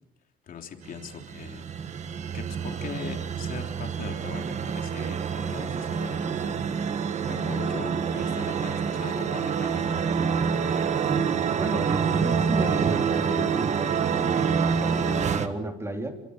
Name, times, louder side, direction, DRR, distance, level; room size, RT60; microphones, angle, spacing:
voice 1, 0.4-10.3, left 7 dB, 45° left, 3 dB, 3.5 m, -41 dB
sound 1, 0.8-15.5, right 6 dB, 35° right, 1.6 m, -27 dB
voice 2, 11.1-16.1, right 1 dB, 15° right, 3 dB, 3.4 m, -34 dB
28.5 x 24.5 x 6.8 m, 0.87 s
cardioid pair, 165°, 21 cm